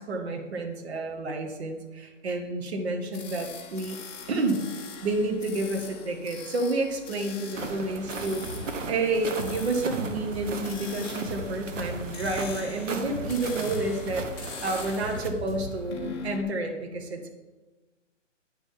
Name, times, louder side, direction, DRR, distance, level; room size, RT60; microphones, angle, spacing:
voice 1, 0.0-4.0 4.3-4.7 5.0-8.5 8.9-17.3, right 2 dB, 55° right, 2 dB, 1.7 m, -30 dB
sound 1, 3.1-16.4, left 5 dB, 20° left, 1.4 m, -43 dB
sound 2, 7.5-15.3, right 4 dB, 75° right, 1.3 m, -37 dB
sound 3, 8.4-8.8 9.1-10.7 11.0-12.6 12.9-16.0, equal, 20° right, 3.4 m, -39 dB
9.6 x 5.9 x 5.7 m, 1.2 s
hypercardioid pair, 150°, 38 cm